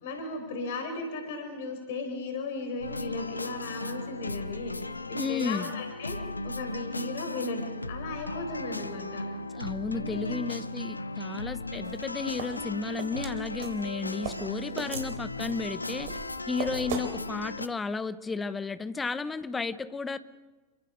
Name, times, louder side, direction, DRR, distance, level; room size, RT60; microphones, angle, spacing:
voice 1, 0.0-6.2 6.4-7.6 7.9-9.3 9.9-10.4 14.7-14.9, left 3 dB, 55° left, 6 dB, 4.3 m, -36 dB
sound 1, 2.8-17.7, left 2 dB, 85° left, 0.8 m, -36 dB
voice 2, 5.2-5.7 9.5-16.1 16.5-20.2, left 4 dB, 15° left, 13 dB, 1.1 m, -33 dB
sound 2, 11.8-17.1, right 6 dB, 50° right, 3.2 m, -39 dB
28.0 x 24.0 x 5.2 m, 1.3 s
figure-of-eight pair, 90°, 0 cm